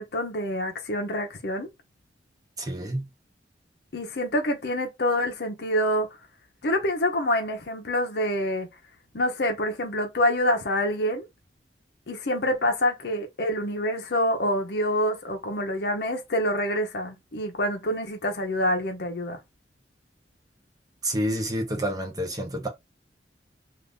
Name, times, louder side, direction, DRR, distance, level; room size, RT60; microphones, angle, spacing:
voice 1, 0.0-1.7 3.9-6.2 6.6-8.7 9.1-11.3 12.1-19.4, left 1 dB, 65° left, 0.7 m, -26 dB
voice 2, 2.6-3.1 21.0-22.7, equal, 20° right, 0.7 m, -28 dB
2.6 x 2.5 x 3.4 m
head